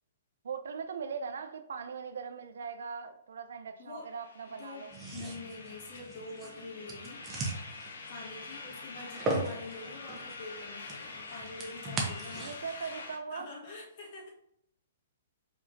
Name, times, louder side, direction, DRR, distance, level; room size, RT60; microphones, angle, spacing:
voice 1, 0.4-4.9 12.4-13.5, right 6 dB, 65° right, 0.5 m, -40 dB
voice 2, 3.8-4.1 4.6-7.2 8.1-12.6 13.3-14.3, left 3 dB, 50° left, 1.6 m, -45 dB
sound 1, 4.1-13.2, left 3 dB, 70° left, 0.8 m, -46 dB
sound 2, 4.9-12.9, right 2 dB, 25° right, 1.0 m, -39 dB
4.8 x 3.8 x 2.6 m
figure-of-eight pair, 115°, 0 cm